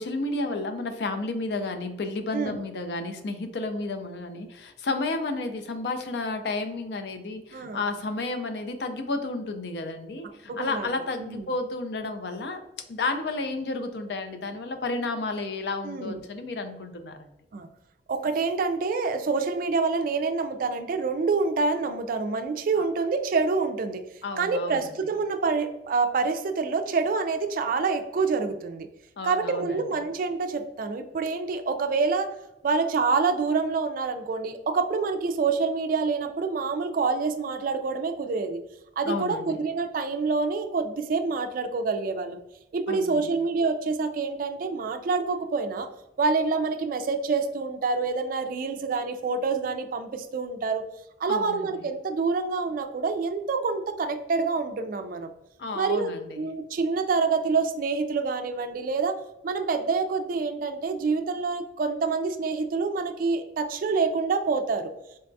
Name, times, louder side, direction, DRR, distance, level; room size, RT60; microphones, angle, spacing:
voice 1, 0.0-12.6 12.9-17.3 22.8-22.9 24.2-24.9 29.2-29.9 39.0-39.6 42.9-43.2 51.3-51.8 55.6-56.4, left 3 dB, 65° left, 7 dB, 0.4 m, -32 dB
voice 2, 10.5-10.9 11.2-11.5 15.8-16.2 17.5-17.7 18.1-24.0 24.4-28.9 29.2-32.3 32.6-38.6 39.0-42.4 42.7-45.9 46.2-50.8 51.2-55.3 55.7-56.1 56.4-64.9, right 4 dB, 50° right, 8 dB, 0.3 m, -27 dB
3.9 x 2.3 x 2.5 m, 0.87 s
head